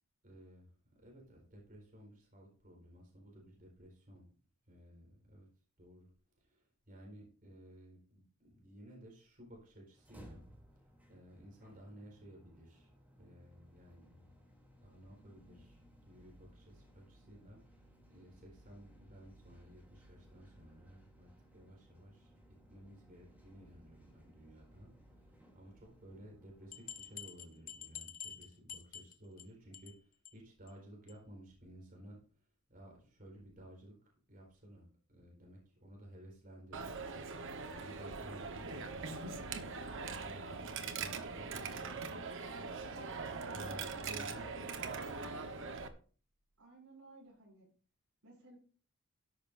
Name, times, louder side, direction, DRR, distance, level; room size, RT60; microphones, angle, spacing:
voice 1, 0.2-0.7 1.0-4.3 4.7-5.5 5.8-6.1 6.4-10.5 11.1-12.9 13.2-14.2 14.8-22.3 22.7-24.9 25.3-32.2 32.7-33.9 34.3-37.1 37.8-39.7 39.9-42.5 43.0-45.1, right 1 dB, 40° right, -2 dB, 4.5 m, -55 dB
sound 1, 9.9-28.0, equal, 10° right, 3.0 m, -61 dB
sound 2, 26.7-29.5 29.7-30.0 30.3-30.4 30.7-30.8 31.1-31.2, left 8 dB, 40° left, 1.0 m, -48 dB
Coin (dropping), 36.7-45.9, right 4 dB, 60° right, 1.2 m, -42 dB
voice 2, 44.7-45.1 46.6-47.7 48.2-48.6, right 1 dB, 75° right, -2 dB, 6.6 m, -57 dB
13.0 x 11.0 x 2.6 m, 0.40 s
head